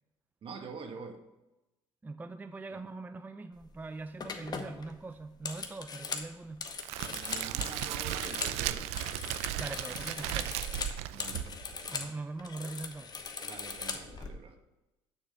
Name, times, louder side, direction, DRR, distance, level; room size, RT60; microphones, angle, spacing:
voice 1, 0.4-1.2 2.7-2.8 7.1-8.9 11.1-11.7 13.4-14.6, right 4 dB, 55° right, 5 dB, 1.5 m, -45 dB
voice 2, 2.0-6.7 9.6-10.5 11.9-13.2, right 3 dB, 15° right, 9 dB, 0.4 m, -42 dB
sound 1, 3.6-3.8 4.2-8.6 8.9-12.1 12.4-14.3, left 5 dB, 35° left, 1.1 m, -40 dB
Crackle, 6.8-11.9, right 13 dB, 85° right, 0.5 m, -36 dB
sound 2, 9.6-10.2 12.0-12.6 12.9-13.0, left 1 dB, 15° left, 2.6 m, -57 dB
7.2 x 6.4 x 6.3 m, 1.0 s
supercardioid pair, 80°, 11 cm